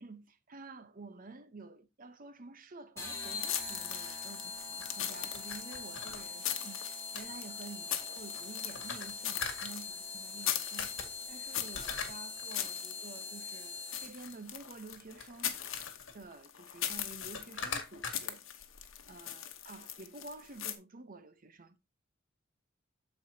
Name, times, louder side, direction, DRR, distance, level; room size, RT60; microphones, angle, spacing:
voice 1, 0.0-15.6 16.1-18.4 18.8-21.8, right 3 dB, 45° right, 0.8 m, -50 dB
sound 1, 3.0-14.4, left 4 dB, 15° left, 3.4 m, -43 dB
sound 2, 3.1-20.7, left 11 dB, 80° left, 1.1 m, -40 dB
sound 3, 4.5-6.2 7.1-7.3 8.2-9.7 10.5-10.6 10.8-11.1 11.6-12.6 14.1-14.3 14.7-16.1 16.8-16.9 17.1-18.1, left 5 dB, 65° left, 1.9 m, -41 dB
13.5 x 4.6 x 2.8 m
head